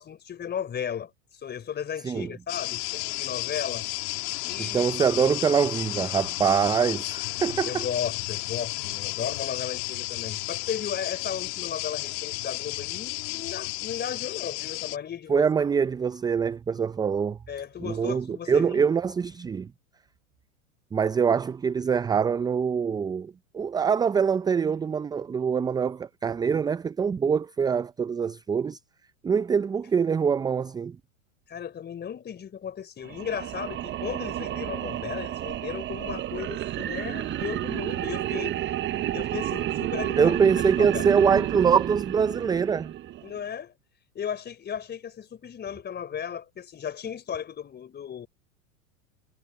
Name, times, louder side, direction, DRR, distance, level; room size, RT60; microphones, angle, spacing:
voice 1, 0.0-3.9 4.1-4.9 7.7-15.4 17.5-18.9 31.5-38.6 39.1-40.4 40.8-41.1 43.2-43.7 44.1-48.3, left 8 dB, 25° left, 4.1 m, -35 dB
sound 1, 2.5-15.0, left 26 dB, 55° left, 3.0 m, -33 dB
voice 2, 4.6-7.9 15.3-17.4 17.8-19.7 20.9-28.8 29.2-31.0 40.2-42.9, right 6 dB, 10° right, 0.5 m, -24 dB
sound 2, 33.0-43.4, right 13 dB, 25° right, 1.0 m, -31 dB
hypercardioid pair, 105°, 41 cm